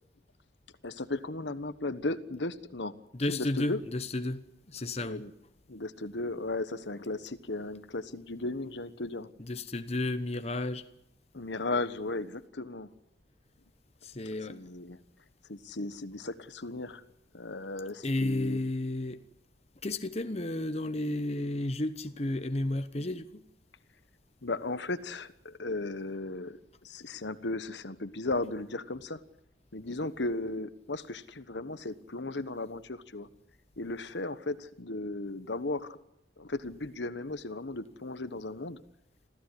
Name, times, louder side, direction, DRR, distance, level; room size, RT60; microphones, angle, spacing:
voice 1, 0.8-3.0 3.3-3.8 5.0-5.3 5.7-9.3 11.3-12.9 14.5-15.0 15.5-17.0 17.3-18.6 24.4-29.2 29.7-33.3 33.8-36.0 36.4-38.8, left 2 dB, 70° left, 1.3 m, -36 dB
voice 2, 3.1-5.2 9.4-10.9 14.0-14.6 18.0-19.2 19.8-23.4, left 1 dB, 35° left, 1.0 m, -32 dB
26.5 x 16.0 x 9.9 m
head